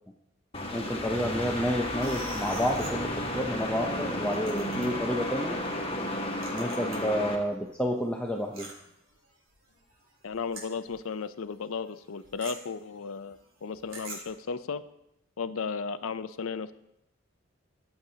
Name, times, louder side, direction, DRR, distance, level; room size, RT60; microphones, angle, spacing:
sound 1, 0.5-7.4, left 1 dB, 30° left, 1.6 m, -33 dB
voice 1, 0.7-5.6 6.5-8.7, equal, 5° left, 0 dB, 0.7 m, -30 dB
sound 2, 1.9-7.2 7.5-11.1 11.4-11.6 11.9-14.4, right 2 dB, 80° right, 3.2 m, -47 dB
voice 2, 10.2-14.8 15.4-16.7, left 5 dB, 85° left, 13 dB, 0.5 m, -35 dB
22.0 x 7.8 x 2.8 m, 0.83 s
head